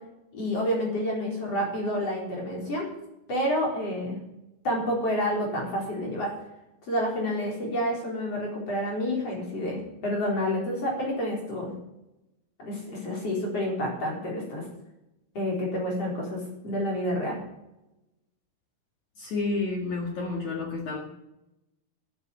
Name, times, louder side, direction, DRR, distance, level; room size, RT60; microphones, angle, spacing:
voice 1, 0.3-2.9 3.3-4.2 4.6-6.3 6.9-11.7 12.6-14.6 15.3-17.4, equal, 35° left, -1 dB, 4.7 m, -29 dB
voice 2, 19.2-21.0, left 3 dB, 50° left, 0 dB, 2.7 m, -30 dB
12.0 x 11.5 x 8.4 m, 0.91 s
omnidirectional pair, 5.6 m